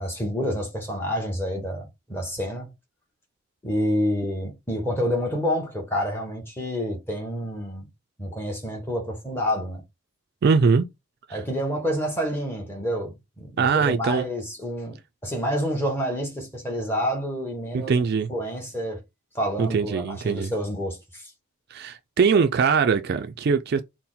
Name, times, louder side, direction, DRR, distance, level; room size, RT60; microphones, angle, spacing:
voice 1, 0.0-2.7 3.6-7.9 8.2-9.8 11.3-18.0 18.3-19.0 19.3-21.3, equal, 10° left, 1.1 m, -28 dB
voice 2, 10.4-10.9 11.3-11.4 13.6-14.3 17.7-18.3 19.6-20.5 21.7-23.8, right 5 dB, 45° right, 0.3 m, -22 dB
4.2 x 2.1 x 3.8 m
head